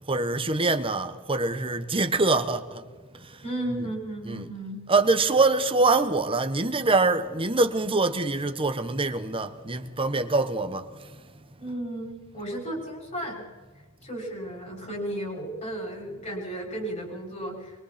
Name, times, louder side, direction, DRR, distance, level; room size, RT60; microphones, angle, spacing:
voice 1, 0.1-2.8 3.1-3.5 3.8-3.9 4.2-4.5 4.9-11.2, right 3 dB, 25° right, 1.1 m, -24 dB
voice 2, 3.4-4.8 11.6-13.5 14.0-17.8, right 1 dB, 30° left, 6.1 m, -34 dB
25.5 x 23.5 x 4.3 m
head